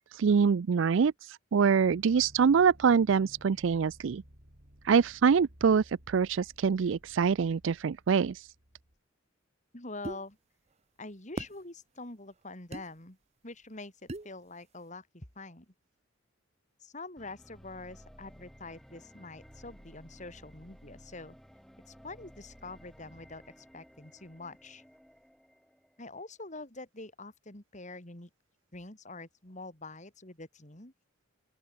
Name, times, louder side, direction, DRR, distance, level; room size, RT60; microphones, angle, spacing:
voice 1, 0.1-4.2 4.8-8.5, right 6 dB, 75° right, 0.4 m, -25 dB
sound 1, 1.8-9.0, equal, 55° right, 5.1 m, -57 dB
voice 2, 9.7-10.4 11.0-13.2 13.4-15.7 16.8-21.4 21.9-24.8 26.0-28.3 28.7-30.9, left 2 dB, 40° left, 3.5 m, -45 dB
sound 2, 10.0-10.2 11.4-11.6 12.7-12.9 14.1-14.3, right 2 dB, 35° right, 0.9 m, -37 dB
sound 3, 17.2-26.2, equal, ahead, 7.0 m, -56 dB
open air
head